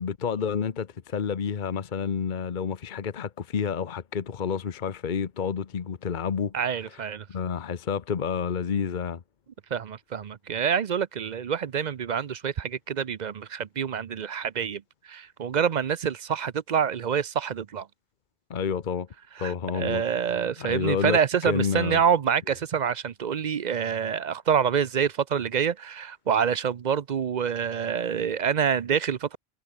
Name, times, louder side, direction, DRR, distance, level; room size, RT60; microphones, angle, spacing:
voice 1, 0.0-6.6 6.9-7.0 7.3-9.2 18.5-19.1 19.4-20.0 20.6-22.0, left 6 dB, 50° left, 1.0 m, -29 dB
voice 2, 6.5-7.3 9.7-17.9 19.4-29.4, right 7 dB, 50° right, 0.7 m, -27 dB
omnidirectional pair, 1.1 m